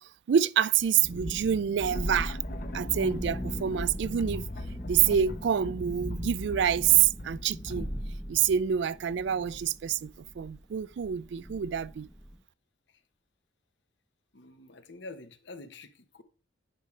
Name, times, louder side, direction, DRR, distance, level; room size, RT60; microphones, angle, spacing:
voice 1, 0.3-2.4 2.7-4.5 4.9-7.9 8.3-12.1, right 9 dB, 65° right, 0.3 m, -27 dB
Thunderstorm, 0.8-12.4, equal, ahead, 0.7 m, -40 dB
sound 1, 1.8-8.7, left 2 dB, 50° left, 0.7 m, -42 dB
sound 2, 2.6-8.5, left 1 dB, 20° left, 1.0 m, -44 dB
voice 2, 14.3-16.2, left 2 dB, 65° left, 1.0 m, -47 dB
10.0 x 5.1 x 3.2 m
head